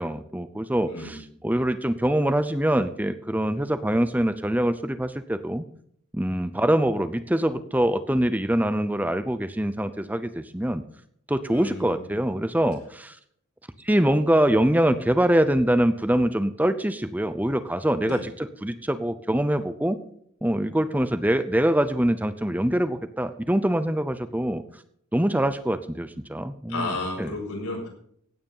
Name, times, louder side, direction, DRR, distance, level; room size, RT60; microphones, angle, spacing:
voice 1, 0.0-5.6 6.1-10.8 11.3-13.2 13.8-20.0 20.4-24.6 25.1-27.4, right 1 dB, 5° right, 11 dB, 0.7 m, -24 dB
voice 2, 11.5-12.0 18.0-18.2 26.7-27.9, left 2 dB, 85° left, 0 dB, 6.9 m, -32 dB
16.5 x 9.3 x 5.6 m, 0.64 s
head